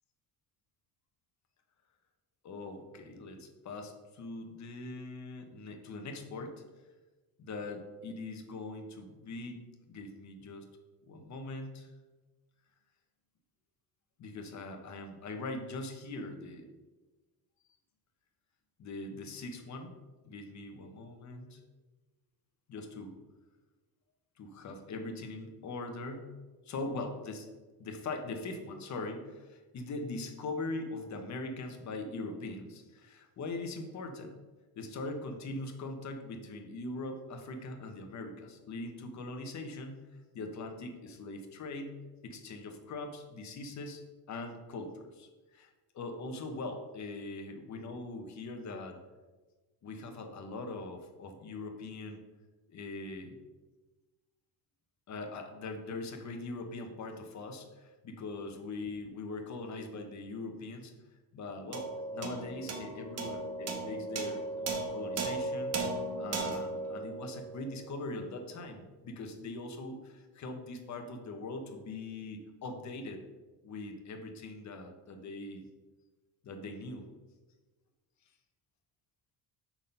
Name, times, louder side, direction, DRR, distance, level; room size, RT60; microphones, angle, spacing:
voice 1, 2.4-6.6 7.4-9.6 9.9-10.6 11.0-11.9 14.2-16.7 18.8-20.0 20.2-21.6 22.7-23.1 24.4-26.3 26.6-27.5 27.8-34.4 34.7-44.0 44.3-49.0 49.8-52.2 52.7-53.4 55.1-60.9 61.3-73.2 73.6-75.7 76.4-77.1, left 2 dB, 45° left, 5 dB, 1.2 m, -41 dB
sound 1, 61.7-68.3, right 3 dB, 40° right, 1.0 m, -37 dB
6.5 x 5.9 x 5.4 m, 1.2 s
cardioid pair, 170°, 39 cm